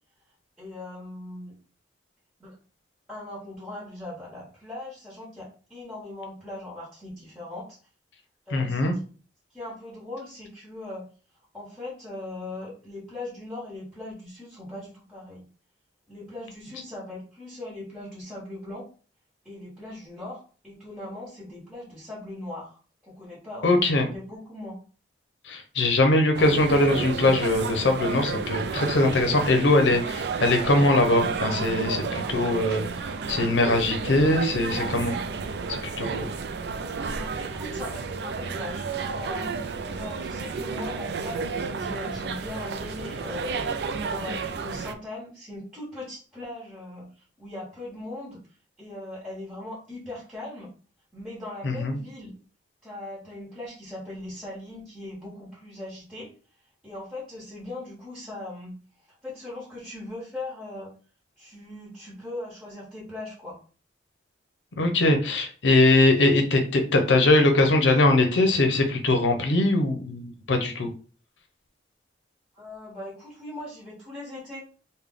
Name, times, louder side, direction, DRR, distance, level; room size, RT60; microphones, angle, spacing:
voice 1, 0.6-1.6 2.4-2.5 3.1-7.8 8.5-9.0 9.5-11.0 11.5-15.4 16.1-18.9 19.4-24.8 37.1-43.6 44.0-48.4 48.8-50.7 51.1-52.3 52.8-56.3 56.8-58.7 59.1-60.9 61.4-63.6 72.5-74.6, left 2 dB, 5° right, -9 dB, 1.3 m, -39 dB
voice 2, 8.5-9.0 23.6-24.1 25.4-35.2 35.7-36.3 51.6-52.0 64.8-70.9, left 2 dB, 75° left, 4 dB, 0.6 m, -21 dB
sound 1, 26.3-44.9, right 5 dB, 60° right, 0.3 m, -31 dB
3.3 x 2.2 x 3.6 m, 0.38 s
head